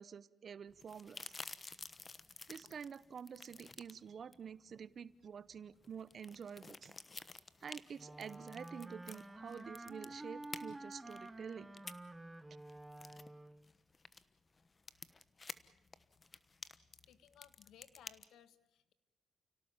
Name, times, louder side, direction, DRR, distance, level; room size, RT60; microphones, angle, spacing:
voice 1, 0.0-1.4 2.5-6.9 7.6-11.7, right 7 dB, 50° right, 17 dB, 0.8 m, -49 dB
sound 1, 0.7-18.2, left 4 dB, 30° left, 1.2 m, -53 dB
Wind instrument woodwind instrument, 8.0-13.7, right 1 dB, 15° right, 1.2 m, -50 dB
voice 2, 17.1-18.9, left 10 dB, 80° left, 13 dB, 1.5 m, -62 dB
30.0 x 17.5 x 7.3 m, 0.94 s
cardioid pair, 90°, 0 cm